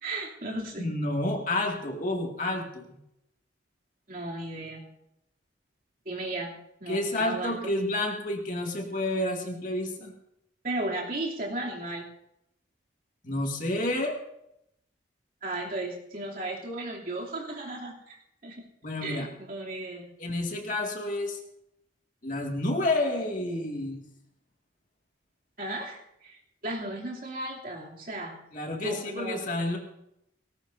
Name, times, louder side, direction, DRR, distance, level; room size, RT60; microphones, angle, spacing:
voice 1, 0.0-0.9 4.1-4.9 6.0-6.5 6.8-7.7 10.6-12.1 15.4-18.2 18.4-18.6 19.0-20.2 25.6-28.4 28.8-29.4, right 2 dB, 45° right, -3 dB, 2.9 m, -35 dB
voice 2, 0.8-2.9 6.9-10.1 13.2-14.2 18.8-19.3 20.2-21.4 22.2-24.0 28.5-29.8, left 1 dB, 40° left, 1 dB, 2.2 m, -29 dB
19.0 x 18.0 x 2.7 m, 0.79 s
head